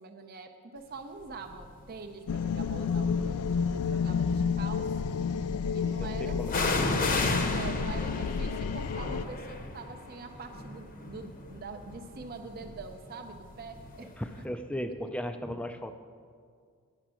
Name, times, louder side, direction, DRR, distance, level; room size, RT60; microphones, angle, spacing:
voice 1, 0.0-5.1 5.7-6.7 7.3-14.1, right 4 dB, 40° right, 4 dB, 0.6 m, -44 dB
scary thunder and lightning, 1.5-1.9 2.6-3.6 6.5-14.1 14.4-14.5, left 3 dB, 40° left, 0.8 m, -34 dB
sound 1, 2.3-9.2, left 6 dB, 90° left, 0.4 m, -30 dB
voice 2, 6.0-6.5 14.0-15.9, equal, 5° left, 8 dB, 0.3 m, -36 dB
9.8 x 5.9 x 7.5 m, 2.1 s
head